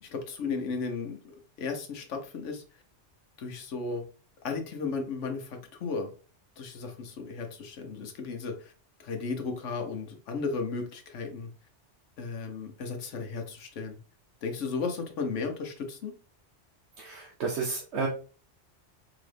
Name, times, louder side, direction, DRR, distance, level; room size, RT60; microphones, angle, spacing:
voice 1, 0.0-2.6 3.4-4.0 4.4-6.1 6.6-8.7 9.0-11.5 12.2-14.0 14.4-16.1, left 4 dB, 80° left, 4 dB, 1.2 m, -35 dB
voice 2, 17.0-18.1, right 4 dB, 70° right, -2 dB, 1.0 m, -31 dB
3.8 x 3.0 x 3.3 m, 0.37 s
omnidirectional pair, 1.2 m